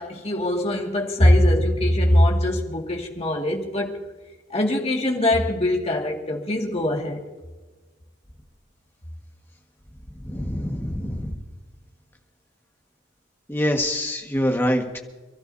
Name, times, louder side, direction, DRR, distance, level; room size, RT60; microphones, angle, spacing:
voice 1, 0.0-3.9 4.5-7.2, left 1 dB, 30° left, 1 dB, 2.1 m, -21 dB
voice 2, 10.2-11.4 13.5-15.0, equal, 10° left, 2 dB, 1.6 m, -25 dB
28.0 x 13.0 x 2.8 m, 1.3 s
head